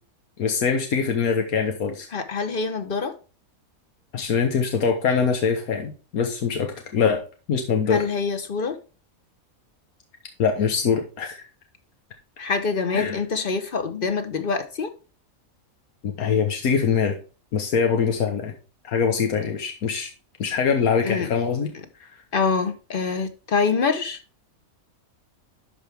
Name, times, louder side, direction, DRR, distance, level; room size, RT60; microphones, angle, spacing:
voice 1, 0.4-2.1 4.1-8.1 10.4-11.4 12.9-13.2 16.0-17.2 17.5-18.5 18.8-20.1 20.4-21.7 22.0-22.1, left 6 dB, 90° left, 1.6 m, -23 dB
voice 2, 2.1-3.1 7.9-8.8 12.4-14.9 21.0-21.3 22.3-24.2, left 4 dB, 40° left, 1.1 m, -25 dB
11.5 x 4.9 x 3.4 m
omnidirectional pair, 1.5 m